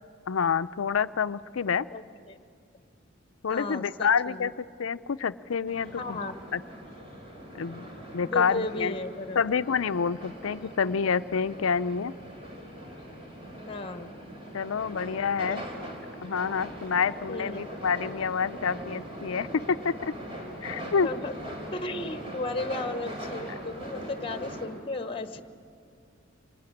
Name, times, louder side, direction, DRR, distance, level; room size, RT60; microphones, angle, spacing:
voice 1, 0.3-1.9 3.4-6.2 6.5-6.6 7.5-7.9 8.1-8.9 9.4-12.1 14.5-15.7 16.2-20.1 20.6-21.1, left 6 dB, 90° left, 14 dB, 0.5 m, -28 dB
voice 2, 1.9-2.4 3.5-4.5 6.0-6.3 8.2-9.5 10.8-10.9 13.7-14.2 15.5-15.6 17.3-17.6 21.0-21.4 21.7-25.4, left 2 dB, 25° left, 10 dB, 1.0 m, -35 dB
sound 1, 5.7-24.7, equal, 25° right, 3.9 m, -41 dB
25.5 x 20.5 x 9.8 m, 2.4 s
head